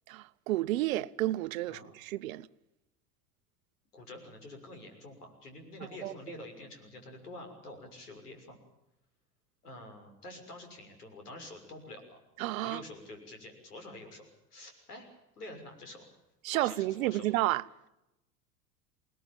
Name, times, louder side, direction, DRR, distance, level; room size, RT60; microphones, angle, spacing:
voice 1, 0.1-2.5 6.0-6.1 12.4-12.8 16.4-17.6, right 16 dB, 60° right, 0.9 m, -31 dB
voice 2, 3.9-8.6 9.6-12.2 12.6-15.1 15.4-16.1 16.5-17.3, left 2 dB, 75° left, 6.6 m, -47 dB
26.0 x 19.5 x 7.3 m
figure-of-eight pair, 80°, 46 cm